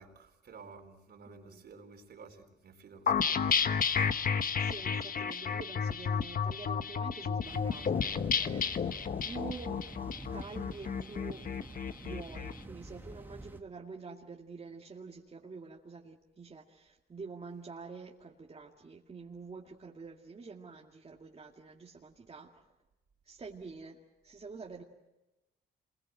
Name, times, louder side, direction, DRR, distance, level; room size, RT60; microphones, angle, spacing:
voice 1, 0.0-4.1, right 4 dB, 55° right, 5 dB, 3.9 m, -53 dB
voice 2, 1.3-1.7 4.5-8.9 9.2-9.9 10.3-11.5 12.0-22.7 23.2-24.8, right 4 dB, 30° right, -1 dB, 2.3 m, -47 dB
sound 1, 3.1-12.5, left 6 dB, 45° left, 1.2 m, -31 dB
sound 2, 7.4-13.6, right 2 dB, 10° right, 1.9 m, -49 dB
27.0 x 22.0 x 8.0 m, 1.0 s
cardioid pair, 90°, 20 cm